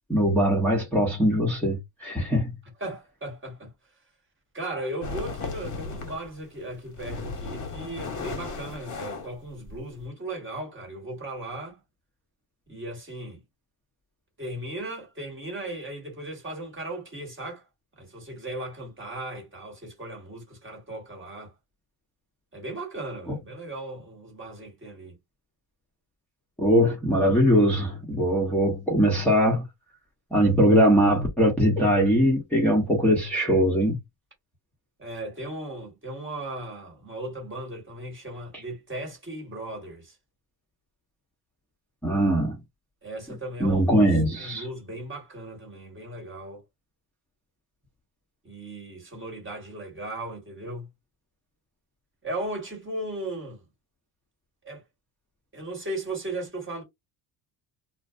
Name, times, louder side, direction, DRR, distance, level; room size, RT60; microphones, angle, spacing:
voice 1, 0.1-2.5 26.6-29.6 30.3-34.0 42.0-42.6 43.6-44.6, equal, 5° left, 0.9 m, -21 dB
voice 2, 2.8-3.7 4.5-11.8 12.7-13.4 14.4-17.6 18.0-21.5 22.5-25.2 35.0-40.2 43.0-46.6 48.4-50.9 52.2-53.6 54.6-54.8 55.5-56.8, right 1 dB, 25° right, 1.4 m, -37 dB
sound 1, 5.0-6.3 6.7-10.0, left 4 dB, 35° left, 1.1 m, -35 dB
2.4 x 2.2 x 2.5 m
supercardioid pair, 100°, 49 cm